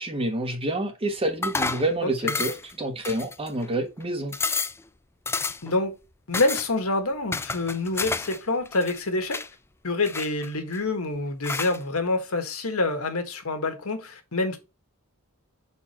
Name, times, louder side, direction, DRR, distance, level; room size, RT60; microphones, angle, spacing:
voice 1, 0.0-4.3, right 1 dB, 25° right, 1.1 m, -28 dB
sound 1, 1.4-1.9 2.3-2.7 3.0-3.7 4.0-4.1 4.3-4.8 5.3-5.7 6.3-6.7 7.3-8.4 8.7-9.5 10.0-10.8 11.4-11.8, left 4 dB, 10° left, 0.3 m, -30 dB
voice 2, 2.0-2.4 5.6-6.0 6.3-9.4 9.8-14.6, left 2 dB, 90° left, 1.5 m, -27 dB
6.0 x 4.2 x 4.3 m
head